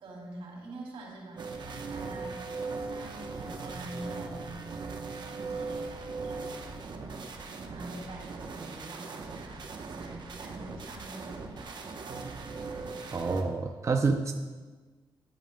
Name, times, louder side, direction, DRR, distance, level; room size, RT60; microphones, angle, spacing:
voice 1, 0.0-2.4 2.8-7.1 7.6-12.4, right 2 dB, 85° right, -2 dB, 2.7 m, -46 dB
sound 1, 1.4-13.4, right 4 dB, 55° right, 0.9 m, -39 dB
voice 2, 13.1-14.3, right 4 dB, 30° right, 5 dB, 0.5 m, -28 dB
10.5 x 10.0 x 2.2 m, 1.4 s
cardioid pair, 100°, 9 cm